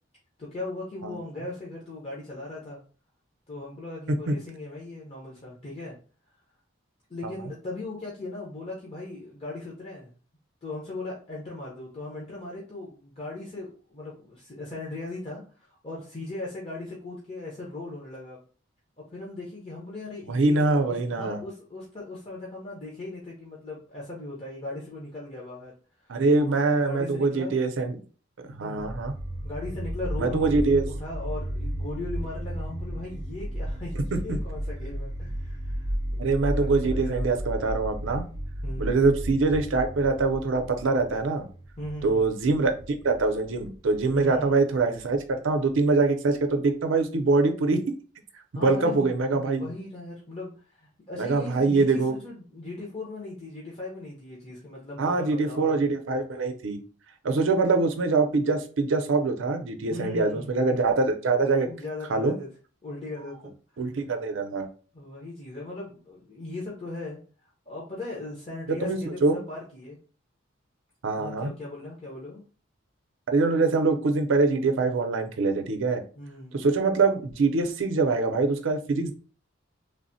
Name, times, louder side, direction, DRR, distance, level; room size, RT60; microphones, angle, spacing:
voice 1, 0.4-2.8 3.5-6.0 7.1-10.1 10.6-18.4 19.0-25.7 26.0-27.5 28.6-29.0 29.4-36.2 36.6-37.4 38.6-39.0 41.8-42.3 44.1-44.5 48.5-55.8 59.9-60.5 61.6-62.5 62.8-63.5 64.9-67.2 67.7-70.0 71.2-72.4 76.2-76.6, left 2 dB, 30° left, -5 dB, 0.7 m, -38 dB
voice 2, 20.3-21.4 26.1-28.0 28.6-29.1 30.2-30.9 34.3-34.4 36.2-38.2 38.8-41.5 42.0-42.7 43.0-47.8 48.5-49.6 51.1-52.1 55.0-56.8 57.2-61.7 62.1-62.3 63.8-64.7 68.7-69.4 71.0-71.5 73.3-76.0 76.5-79.1, right 3 dB, 75° right, 6 dB, 0.5 m, -24 dB
sound 1, 28.8-45.8, equal, 25° right, 0.6 m, -34 dB
3.2 x 2.1 x 2.6 m, 0.39 s
head